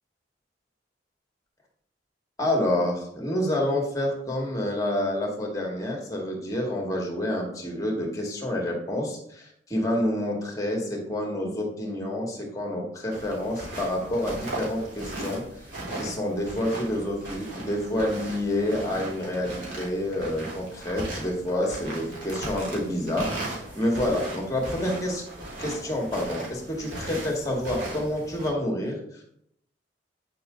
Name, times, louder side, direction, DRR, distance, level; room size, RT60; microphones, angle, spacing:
voice 1, 2.4-15.4 15.9-25.2 25.6-29.0, left 1 dB, 20° left, 0 dB, 2.1 m, -28 dB
sound 1, 13.1-28.5, right 1 dB, 85° right, 3.7 m, -37 dB
9.4 x 6.8 x 3.9 m, 0.72 s
head